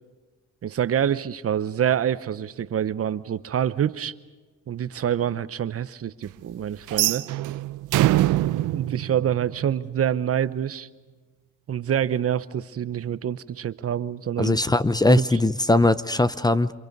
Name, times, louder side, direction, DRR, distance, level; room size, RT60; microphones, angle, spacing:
voice 1, 0.6-4.1 4.7-7.3 8.7-10.9 11.7-14.6 15.1-15.2, right 9 dB, 50° right, 14 dB, 0.9 m, -26 dB
sound 1, 6.9-10.0, right 15 dB, 85° right, 0.7 m, -24 dB
voice 2, 14.4-16.7, left 2 dB, 15° left, 15 dB, 0.7 m, -20 dB
28.5 x 26.5 x 5.4 m, 1.3 s
cardioid pair, 90°, 30 cm